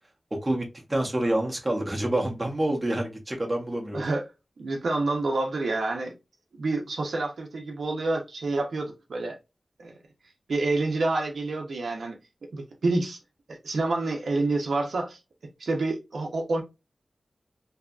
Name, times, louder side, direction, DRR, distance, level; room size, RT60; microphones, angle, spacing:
voice 1, 0.3-4.1, right 1 dB, 20° right, 0.7 m, -27 dB
voice 2, 3.9-4.3 4.6-6.1 6.6-9.4 9.8-9.9 10.5-13.2 13.5-15.2 15.6-16.6, right 2 dB, 85° right, 0.6 m, -28 dB
2.7 x 2.2 x 2.3 m
wide cardioid pair, 105°, 0 cm